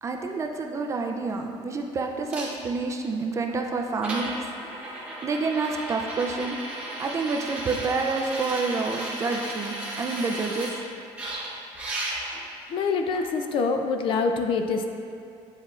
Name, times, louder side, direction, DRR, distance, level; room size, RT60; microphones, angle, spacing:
voice 1, 0.0-4.5 5.2-6.6 7.0-10.8, right 4 dB, 25° right, 3 dB, 0.4 m, -28 dB
sound 1, 2.3-2.5 3.5-3.6 4.0-10.7 11.2-12.4 13.1-13.2, right 1 dB, 10° right, 1.0 m, -34 dB
voice 2, 12.7-14.9, left 4 dB, 50° left, 5 dB, 0.4 m, -25 dB
9.4 x 4.3 x 2.4 m, 2.5 s
cardioid pair, 155°, 12 cm